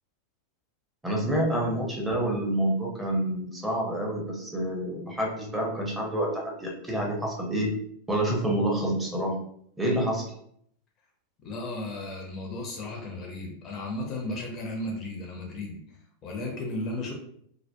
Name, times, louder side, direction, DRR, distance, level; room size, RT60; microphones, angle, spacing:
voice 1, 1.0-7.7 8.1-9.4 9.8-10.3, right 1 dB, 10° right, -1 dB, 0.7 m, -28 dB
voice 2, 11.4-15.8 16.2-17.1, left 2 dB, 30° left, 1 dB, 0.5 m, -34 dB
2.7 x 2.1 x 2.2 m, 0.68 s
figure-of-eight pair, 90°, 0 cm